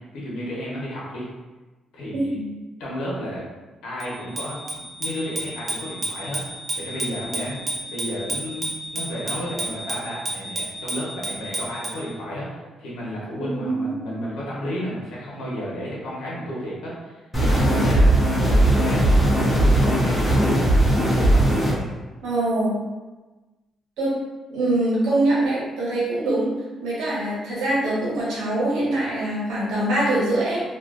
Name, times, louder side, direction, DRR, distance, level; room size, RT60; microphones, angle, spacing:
voice 1, 0.1-1.3 1.9-2.4 2.8-3.4 3.8-6.4 6.7-7.6 7.9-12.5 12.8-19.0 19.5-20.6 20.9-21.4, equal, 80° left, -6 dB, 0.8 m, -32 dB
voice 2, 2.1-2.4 13.4-13.9 22.2-22.7 24.0-24.1 24.5-26.5 26.8-30.6, right 1 dB, 90° right, -7 dB, 1.0 m, -23 dB
Bicycle bell, 4.0-12.1, right 1 dB, 30° right, 0.5 m, -32 dB
sound 1, 17.3-21.7, right 1 dB, 15° left, 0.6 m, -18 dB
2.4 x 2.2 x 2.4 m, 1.2 s
cardioid pair, 90°, 0 cm